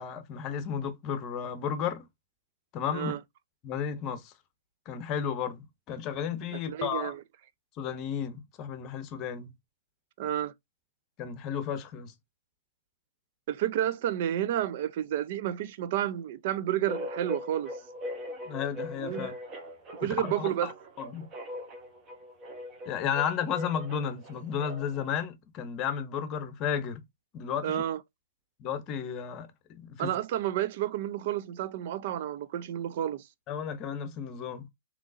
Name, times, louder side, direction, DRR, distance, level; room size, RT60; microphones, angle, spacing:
voice 1, 0.0-2.1 2.7-3.1 3.6-4.3 4.9-7.1 7.8-9.5 11.2-12.1 18.5-19.3 20.2-20.7 21.0-21.3 22.9-27.0 27.3-27.8 28.6-30.2 33.5-34.7, left 8 dB, 35° left, 0.8 m, -33 dB
voice 2, 6.7-7.2 10.2-10.5 13.5-17.7 19.0-19.3 20.0-20.7 27.6-28.0 30.0-33.2, right 11 dB, 50° right, 0.4 m, -30 dB
sound 1, 16.9-25.1, left 1 dB, 30° right, 1.2 m, -41 dB
3.7 x 3.0 x 2.5 m
hypercardioid pair, 125°, 0 cm